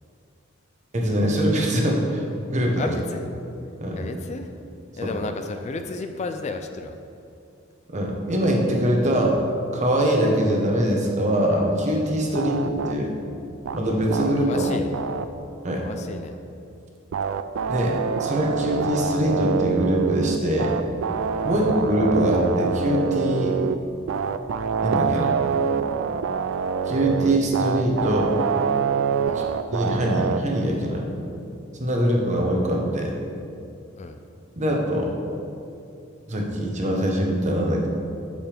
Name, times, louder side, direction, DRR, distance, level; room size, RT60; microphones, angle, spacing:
voice 1, 0.9-2.2 2.5-2.9 3.8-4.0 5.0-5.1 7.9-9.4 9.7-13.1 13.7-14.8 15.6-15.8 17.7-20.8 21.4-23.6 24.8-25.3 26.9-28.3 29.3-31.1 31.8-33.2 34.6-35.1 36.3-37.9, equal, 35° right, 0 dB, 1.1 m, -23 dB
voice 2, 2.8-3.2 3.9-4.5 5.0-7.0 12.3-12.4 14.2-14.9 15.8-16.3 21.5-21.7 29.2-29.5 33.6-33.7 34.0-34.2, left 3 dB, 35° left, 6 dB, 0.4 m, -33 dB
sound 1, 12.3-12.9 13.7-13.8 14.1-15.3 17.1-23.8 24.1-30.4, right 6 dB, 70° right, 0.4 m, -25 dB
8.7 x 6.8 x 3.4 m, 2.6 s
head